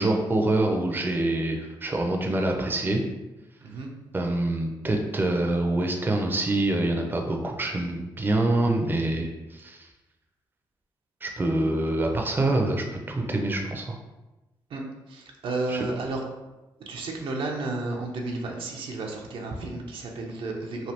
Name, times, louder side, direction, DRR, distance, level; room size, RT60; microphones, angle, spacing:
voice 1, 0.0-3.0 4.1-9.9 11.2-14.0 15.7-15.8, right 2 dB, 20° right, 2 dB, 0.5 m, -25 dB
voice 2, 3.6-3.9 14.7-14.8 15.1-16.2 16.8-20.9, right 2 dB, 70° right, 0 dB, 0.5 m, -32 dB
3.2 x 2.3 x 2.8 m, 1.0 s
cardioid pair, 70°, 9 cm